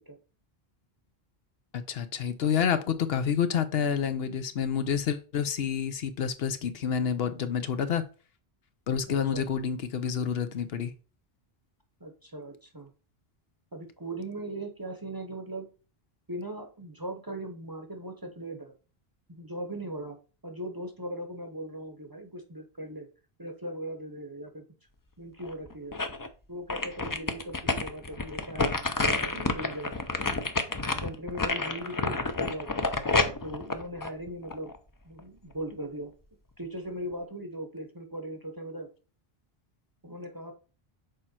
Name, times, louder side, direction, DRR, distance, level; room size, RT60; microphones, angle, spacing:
voice 1, 1.7-8.0 8.9-10.9, left 7 dB, 70° left, 0.9 m, -28 dB
voice 2, 9.1-9.5 12.0-12.9 13.7-15.7 16.3-18.7 19.3-20.2 20.4-23.1 23.4-24.6 25.2-26.0 26.5-30.0 31.0-32.7 33.4-34.7 35.0-36.1 36.6-38.9 40.0-40.5, right 1 dB, 20° right, 0.8 m, -39 dB
sound 1, 25.4-26.3 26.7-34.8 35.2-35.3, left 3 dB, 25° left, 0.5 m, -29 dB
6.8 x 4.4 x 4.3 m
omnidirectional pair, 1.1 m